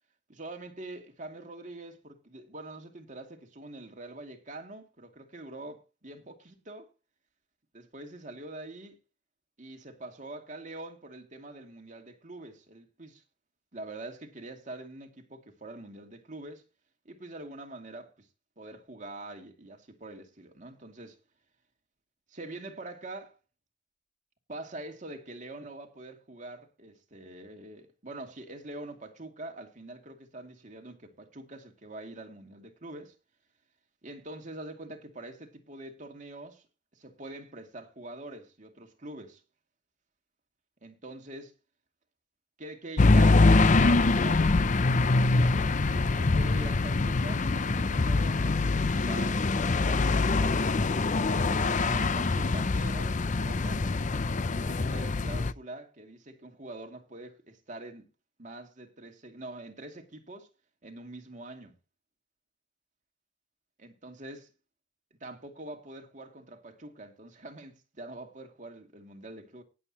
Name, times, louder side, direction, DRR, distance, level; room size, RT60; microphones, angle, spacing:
voice 1, 0.3-6.9 7.7-9.0 9.6-13.2 13.7-16.6 17.0-18.3 18.6-21.2 22.3-23.4 24.5-33.2 34.0-36.7 36.9-39.4 40.8-41.5 42.6-44.7 45.1-45.8 46.1-48.6 48.9-50.6 51.3-53.9 54.6-58.1 58.4-60.5 60.8-61.7 63.8-64.5 65.2-69.6, right 2 dB, 40° right, 2.5 m, -44 dB
sound 1, 43.0-55.5, left 3 dB, 40° left, 0.6 m, -24 dB
19.0 x 7.8 x 2.9 m
head